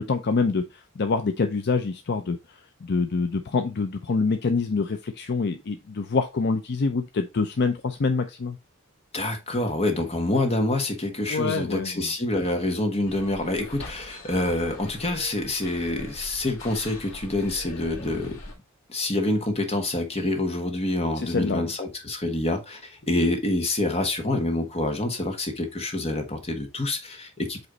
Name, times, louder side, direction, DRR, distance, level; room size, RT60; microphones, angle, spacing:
voice 1, 0.0-8.6 11.3-12.1 21.2-21.7, left 4 dB, 55° left, 0.5 m, -26 dB
voice 2, 9.1-18.4 18.9-27.7, left 2 dB, 30° left, 1.4 m, -27 dB
sound 1, 13.1-18.5, left 1 dB, 85° left, 2.5 m, -42 dB
7.9 x 3.1 x 3.9 m
head